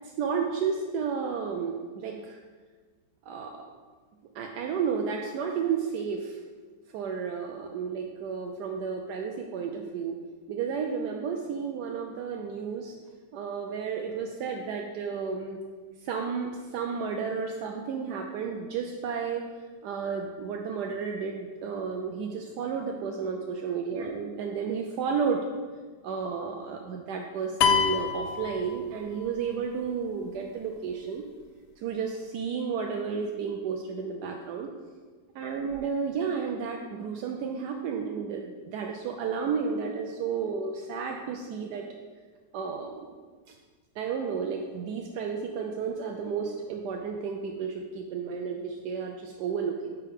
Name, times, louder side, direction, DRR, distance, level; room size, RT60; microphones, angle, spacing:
voice 1, 0.0-2.4 3.3-3.6 4.3-6.4 6.9-10.2 10.5-12.9 13.3-15.6 16.0-19.4 19.8-25.5 26.0-31.2 31.8-34.7 35.3-41.9 42.5-43.0 44.0-50.0, right 6 dB, 80° right, 2 dB, 1.1 m, -32 dB
sound 1, 27.6-29.3, left 7 dB, 85° left, 1.2 m, -26 dB
9.2 x 4.6 x 3.5 m, 1.4 s
omnidirectional pair, 1.8 m